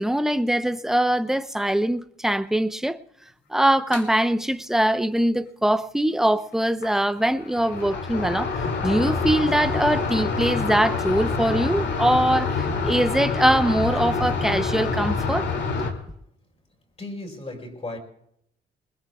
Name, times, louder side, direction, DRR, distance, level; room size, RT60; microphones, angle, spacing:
voice 1, 0.0-3.0 3.5-15.5, right 1 dB, ahead, 0.7 m, -22 dB
sound 1, 3.9-4.0 6.8-6.9 7.2-15.9, left 4 dB, 65° left, 2.6 m, -26 dB
voice 2, 17.0-18.0, left 2 dB, 30° left, 4.9 m, -35 dB
21.5 x 20.5 x 2.3 m
cardioid pair, 90°, 20 cm